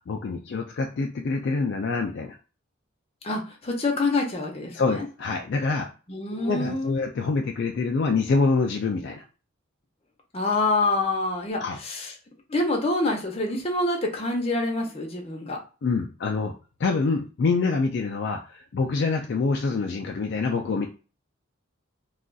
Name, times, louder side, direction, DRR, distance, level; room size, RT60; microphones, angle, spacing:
voice 1, 0.1-2.4 4.7-5.9 6.3-9.2 11.6-11.8 15.8-16.5 16.8-20.9, left 4 dB, 55° left, 0.3 m, -26 dB
voice 2, 3.2-5.1 6.1-7.0 10.3-12.1 12.5-15.6, left 2 dB, 30° left, 0.7 m, -26 dB
2.4 x 2.3 x 3.8 m
head